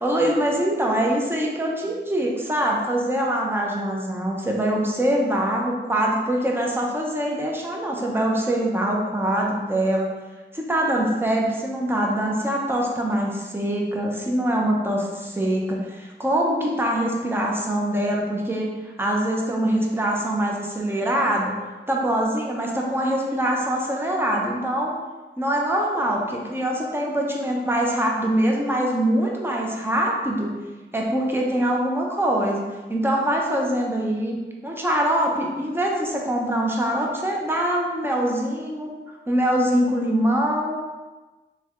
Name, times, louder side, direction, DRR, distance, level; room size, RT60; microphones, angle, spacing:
voice 1, 0.0-10.1 10.5-21.5 21.9-24.9 25.4-30.5 30.9-32.6 32.9-34.4 34.6-38.9 39.3-40.9, right 1 dB, 10° right, -1 dB, 0.8 m, -23 dB
3.3 x 3.2 x 3.8 m, 1.2 s
wide cardioid pair, 75°, 20 cm